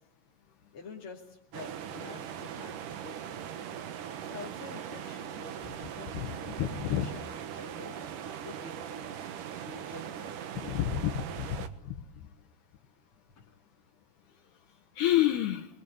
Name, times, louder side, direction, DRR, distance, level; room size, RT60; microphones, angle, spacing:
voice 1, 0.7-3.4 4.2-9.1 9.6-10.3 10.6-10.8 13.3-13.4, left 5 dB, 35° left, -3 dB, 2.8 m, -48 dB
sound 1, 1.5-11.7, right 9 dB, 65° right, 2.4 m, -40 dB
voice 2, 6.6-7.1 10.7-11.9 15.0-15.7, left 12 dB, 75° left, 3 dB, 3.1 m, -29 dB
26.5 x 21.5 x 9.6 m, 0.79 s
omnidirectional pair, 4.9 m